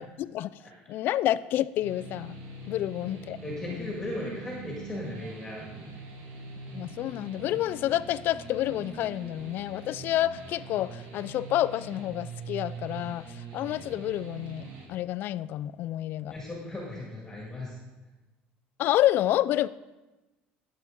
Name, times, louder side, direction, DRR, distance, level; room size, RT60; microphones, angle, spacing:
voice 1, 0.0-0.5 0.9-2.4 2.7-3.4 3.7-3.9 6.7-16.3 18.8-19.7, left 13 dB, 55° left, 0.3 m, -29 dB
sound 1, 1.8-14.9, right 3 dB, 80° right, 2.0 m, -43 dB
voice 2, 3.4-6.0 16.3-17.8, left 1 dB, 10° left, 1.8 m, -37 dB
12.0 x 7.5 x 3.6 m
cardioid pair, 140°, 4 cm